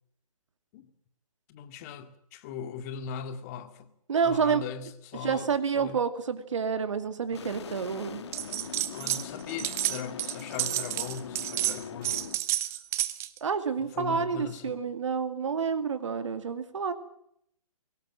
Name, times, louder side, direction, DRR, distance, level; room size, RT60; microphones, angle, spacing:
voice 1, 1.5-3.9 4.2-6.0 8.9-12.3 12.5-12.7 13.8-14.8, left 7 dB, 25° left, 2.1 m, -39 dB
voice 2, 4.1-4.6 5.2-8.2 13.4-16.9, right 6 dB, 55° right, 2.4 m, -29 dB
sound 1, 7.3-12.4, left 7 dB, 50° left, 2.3 m, -41 dB
sound 2, 8.3-9.2 9.5-13.4, right 14 dB, 15° right, 0.8 m, -30 dB
23.0 x 18.5 x 7.7 m
figure-of-eight pair, 135°, 19 cm